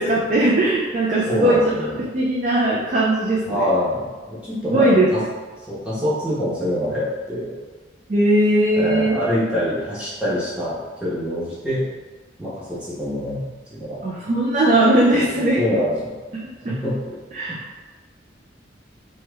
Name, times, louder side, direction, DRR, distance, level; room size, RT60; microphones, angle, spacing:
voice 1, 0.0-3.6 4.7-5.1 8.1-9.2 14.0-15.8 16.6-16.8 17.3-17.8, right 1 dB, 40° right, -5 dB, 0.4 m, -19 dB
voice 2, 1.2-1.9 3.4-5.2 5.7-7.5 8.8-11.8 12.4-14.0 15.1-16.1 16.7-17.2 17.5-17.6, left 1 dB, 5° right, -10 dB, 0.9 m, -25 dB
2.9 x 2.2 x 3.3 m, 1.3 s
head